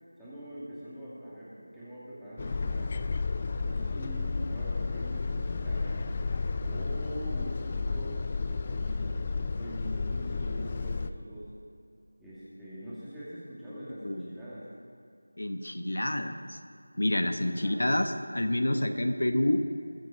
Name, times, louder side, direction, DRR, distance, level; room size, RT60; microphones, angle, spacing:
voice 1, 0.2-2.9 3.6-6.1 6.6-11.5 12.2-14.7 17.4-17.8, right 1 dB, ahead, -13 dB, 1.9 m, -43 dB
sound 1, 2.4-11.1, left 4 dB, 25° left, 0.4 m, -32 dB
voice 2, 13.7-14.4 15.4-16.6 17.0-19.6, left 1 dB, 75° left, 7 dB, 1.1 m, -28 dB
21.0 x 7.7 x 4.7 m, 2.5 s
figure-of-eight pair, 175°, 0 cm